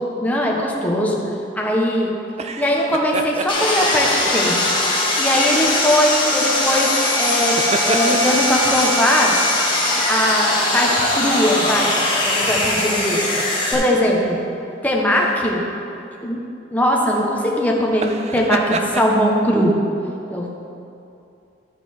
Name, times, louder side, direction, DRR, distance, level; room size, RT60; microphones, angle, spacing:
voice 1, 0.2-1.2 1.5-2.1 2.6-4.7 5.2-7.6 7.8-9.3 10.1-11.9 12.2-13.2 13.7-14.4 14.8-15.6 16.2-16.4 16.7-19.7 20.3-20.5, equal, 10° left, -2 dB, 1.1 m, -20 dB
sound 1, 2.3-4.5 5.1-5.3 7.2-8.6 10.0-12.0 12.4-12.5 13.2-14.0 15.1-15.3 17.9-19.1, right 3 dB, 35° right, 0.5 m, -29 dB
Sawing, 3.5-13.7, left 2 dB, 25° left, 1.9 m, -20 dB
13.0 x 5.3 x 4.4 m, 2.7 s
head